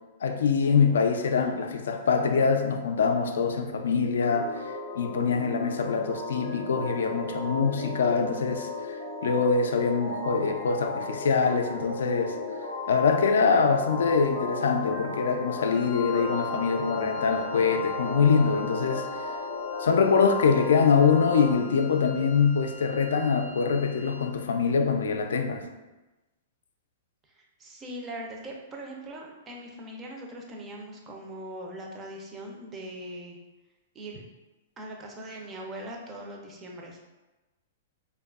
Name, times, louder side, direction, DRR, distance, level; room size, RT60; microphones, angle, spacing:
voice 1, 0.2-9.0 9.2-12.4 12.9-19.4 19.8-25.6, left 5 dB, 85° left, 5 dB, 0.3 m, -24 dB
sound 1, 4.2-21.5, left 3 dB, 75° right, 1.1 m, -35 dB
Wind instrument woodwind instrument, 15.6-24.5, left 5 dB, 40° left, 0.5 m, -46 dB
voice 2, 27.6-33.4 33.9-34.2 34.8-37.0, right 1 dB, 20° right, 0 dB, 0.4 m, -40 dB
2.7 x 2.3 x 2.3 m, 1.1 s
hypercardioid pair, 145°, 0 cm